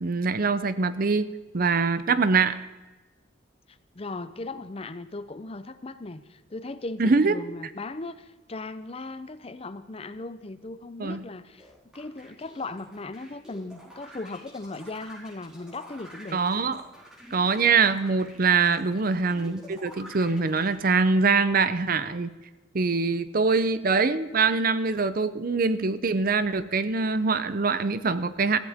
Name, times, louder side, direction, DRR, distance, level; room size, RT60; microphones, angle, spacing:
voice 1, 0.0-2.6 7.0-7.4 11.0-11.2 16.3-16.8 17.3-22.3 22.7-28.6, right 4 dB, 50° right, 14 dB, 0.6 m, -24 dB
voice 2, 3.7-11.7 11.9-16.4 18.5-19.0, left 2 dB, 30° left, 13 dB, 0.6 m, -38 dB
sound 1, 11.6-20.7, equal, 5° right, 5.2 m, -48 dB
15.5 x 15.0 x 3.6 m, 1.1 s
head